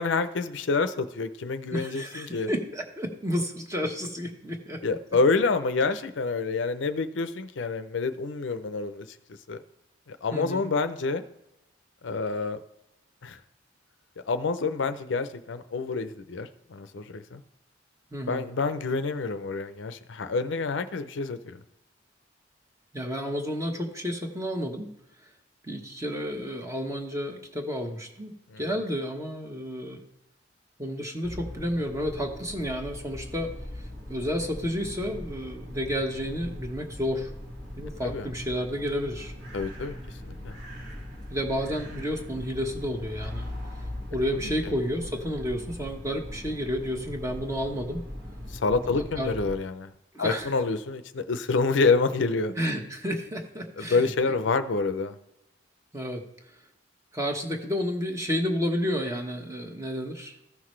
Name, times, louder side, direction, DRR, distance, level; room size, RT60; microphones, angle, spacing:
voice 1, 0.0-2.5 4.8-9.1 9.5-9.6 10.1-11.2 12.0-12.6 13.2-13.4 14.3-17.4 18.3-21.6 28.5-28.6 38.0-38.3 39.5-39.9 40.2-40.5 48.5-49.9 50.2-52.5 53.8-55.1, left 4 dB, 75° left, 10 dB, 0.6 m, -27 dB
voice 2, 1.7-4.8 10.3-10.7 18.1-18.5 22.9-24.9 25.6-30.0 30.8-33.5 34.1-37.3 37.7-39.3 41.3-43.5 44.1-48.0 48.9-49.4 50.1-50.5 52.6-54.1 55.9-56.2 57.1-60.3, equal, 15° right, 3 dB, 1.1 m, -31 dB
sound 1, 31.2-49.6, left 1 dB, 55° right, 1.7 m, -40 dB
14.5 x 5.9 x 3.2 m, 0.89 s
head